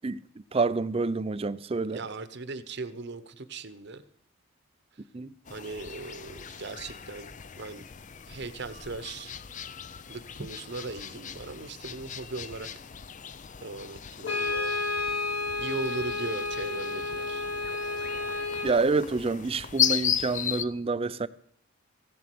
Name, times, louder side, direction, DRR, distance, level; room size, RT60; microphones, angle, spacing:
voice 1, 0.5-2.0 5.1-5.3 18.6-21.3, right 3 dB, 25° right, 0.4 m, -27 dB
voice 2, 1.7-4.0 5.5-7.3 7.6-7.8 8.3-9.4 10.1-12.7 13.6-14.7 15.6-17.5, right 3 dB, 55° right, 1.0 m, -38 dB
sound 1, 5.4-20.6, left 8 dB, 35° left, 0.5 m, -36 dB
Brass instrument, 14.2-18.8, left 3 dB, 60° left, 3.7 m, -31 dB
15.0 x 7.6 x 8.4 m
head